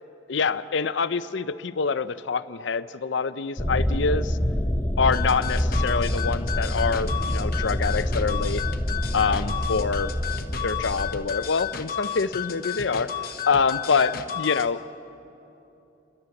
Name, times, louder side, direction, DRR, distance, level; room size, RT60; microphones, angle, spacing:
voice 1, 0.3-4.4 5.0-8.6 9.1-10.1 10.6-13.1 13.5-14.8, left 5 dB, 70° left, 12 dB, 0.6 m, -25 dB
sound 1, 3.6-11.1, equal, 10° left, 0.7 m, -26 dB
sound 2, 5.1-14.7, left 9 dB, 50° left, 1.0 m, -33 dB
29.5 x 12.5 x 7.2 m, 2.9 s
head